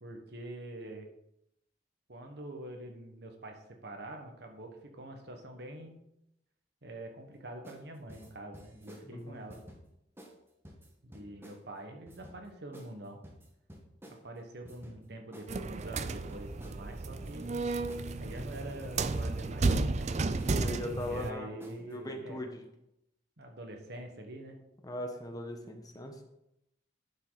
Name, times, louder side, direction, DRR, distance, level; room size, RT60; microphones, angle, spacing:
voice 1, 0.0-1.1 2.1-6.0 6.8-9.6 11.0-13.2 14.1-17.4 18.2-20.1 21.0-22.4 23.4-24.6, right 1 dB, 70° right, 3 dB, 1.4 m, -45 dB
sound 1, 7.6-7.8 8.1-9.1 9.5-9.8 10.2-10.3 10.6-11.6 12.1-12.4 12.7-12.9 13.2-14.2 14.7-15.0 15.3-15.5 15.8-16.8 17.2-17.6 17.9-18.1 18.4-19.3 19.6-20.5 21.0-21.3 21.6-21.9, equal, 15° right, 1.3 m, -52 dB
sound 2, 15.5-21.3, right 3 dB, 40° right, 0.5 m, -33 dB
voice 2, 20.5-21.5 21.8-22.6 24.8-26.2, left 1 dB, 20° left, 4 dB, 1.1 m, -39 dB
10.5 x 5.6 x 4.0 m, 0.81 s
head